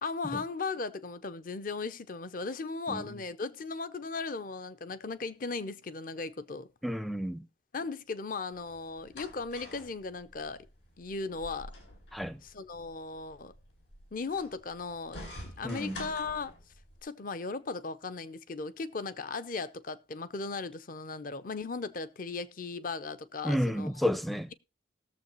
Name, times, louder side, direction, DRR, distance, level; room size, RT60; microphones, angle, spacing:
voice 1, 0.0-6.7 7.7-10.6 11.0-11.7 12.4-13.5 14.1-16.5 17.0-23.9, left 4 dB, 45° left, 0.6 m, -37 dB
voice 2, 6.8-7.5 12.1-12.4 15.6-16.0 23.4-24.5, equal, ahead, 0.5 m, -31 dB
sound 1, 8.5-17.0, left 1 dB, 80° left, 4.5 m, -49 dB
19.5 x 7.2 x 3.0 m
head